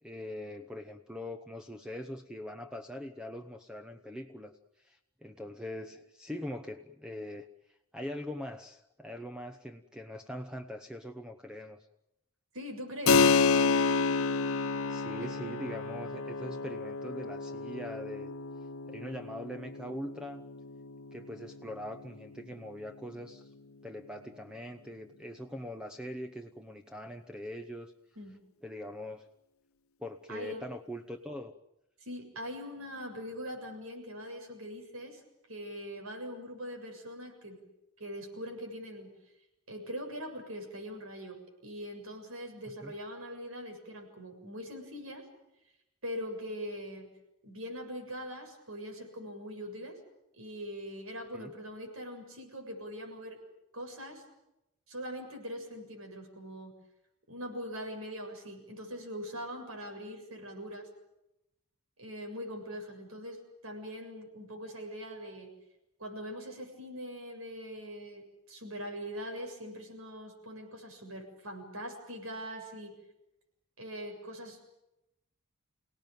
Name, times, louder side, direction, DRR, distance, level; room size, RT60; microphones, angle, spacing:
voice 1, 0.0-7.5 7.9-11.8 14.9-18.4 18.9-20.4 21.1-23.5 23.8-27.9 28.6-29.3 30.0-31.6 42.8-42.9 51.3-51.5, left 1 dB, 5° right, 5 dB, 0.9 m, -42 dB
voice 2, 12.5-13.2 15.2-15.3 28.2-28.4 30.3-30.6 32.0-35.2 35.5-37.6 38.0-39.1 39.7-45.2 46.0-47.1 47.4-50.0 50.4-53.4 53.7-54.2 54.9-56.7 57.3-60.9 62.0-65.5 66.0-73.0 73.8-74.8, equal, 70° right, 4 dB, 7.2 m, -42 dB
Keyboard (musical), 13.1-23.3, left 4 dB, 70° left, 1.1 m, -30 dB
29.0 x 18.0 x 9.2 m, 0.89 s
head